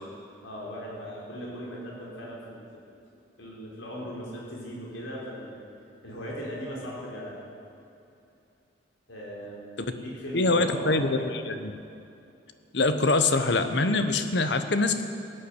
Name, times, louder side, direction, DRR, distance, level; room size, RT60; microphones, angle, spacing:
voice 1, 0.4-2.6 3.4-5.6 6.0-7.3 9.1-11.3, equal, 85° left, -4 dB, 4.3 m, -38 dB
voice 2, 10.3-11.2 11.5-11.7 12.7-15.0, left 3 dB, 60° left, 9 dB, 1.0 m, -24 dB
17.0 x 10.0 x 8.1 m, 2.6 s
head